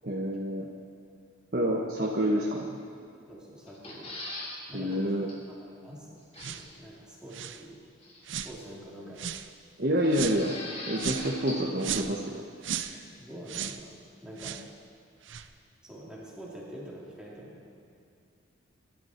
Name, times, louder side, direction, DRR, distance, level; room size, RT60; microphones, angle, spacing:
voice 1, 0.0-0.7 1.5-2.7 4.7-5.3 9.8-10.5 10.9-12.9, equal, 50° right, -2 dB, 1.3 m, -28 dB
voice 2, 3.3-4.1 4.7-7.9 8.4-9.4 12.9-14.6 15.8-17.7, equal, 5° right, -7 dB, 3.4 m, -46 dB
sound 1, 3.7-4.5 4.9-5.0 5.3-5.4 6.3-6.7 8.0-8.6 10.0-11.7 11.9-12.0, left 2 dB, 30° left, 2.9 m, -41 dB
sound 2, 6.4-6.7 7.3-7.6 8.3-8.5 9.2-9.5 10.1-10.4 11.0-11.3 11.8-12.2 12.6-13.0 13.5-13.8 14.4-14.7 15.2-15.5, right 8 dB, 70° right, 0.7 m, -35 dB
24.0 x 12.5 x 4.6 m, 2.6 s
head